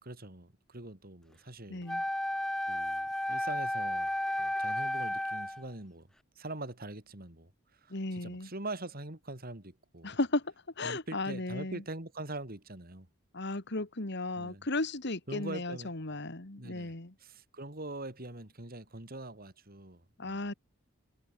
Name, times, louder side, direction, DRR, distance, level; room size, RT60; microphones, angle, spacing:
voice 1, 0.0-1.8 2.7-4.1 4.4-6.1 6.4-10.2 10.8-13.1 14.4-14.7 15.3-15.9 16.6-16.9 17.2-20.5, right 2 dB, 45° right, 3.9 m, -43 dB
voice 2, 1.7-2.0 7.9-8.5 10.0-11.8 13.3-17.1 20.2-20.5, left 2 dB, 60° left, 2.3 m, -35 dB
Wind instrument woodwind instrument, 1.9-5.7, left 1 dB, 5° left, 0.3 m, -33 dB
head